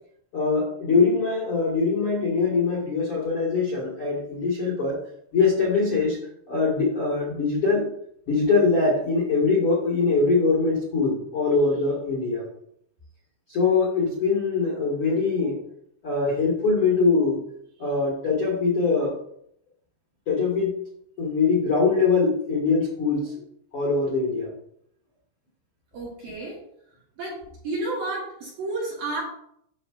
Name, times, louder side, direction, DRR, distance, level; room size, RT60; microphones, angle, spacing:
voice 1, 0.3-5.0 5.3-6.2 6.5-7.8 8.3-12.4 13.5-15.6 16.0-17.4 17.8-19.1 20.3-20.8 21.2-23.3 23.7-24.5, left 4 dB, 75° left, -5 dB, 1.3 m, -22 dB
voice 2, 25.9-26.6 27.2-27.4 27.6-29.2, right 2 dB, 60° right, -5 dB, 2.4 m, -31 dB
9.7 x 6.8 x 2.6 m, 0.73 s
omnidirectional pair, 6.0 m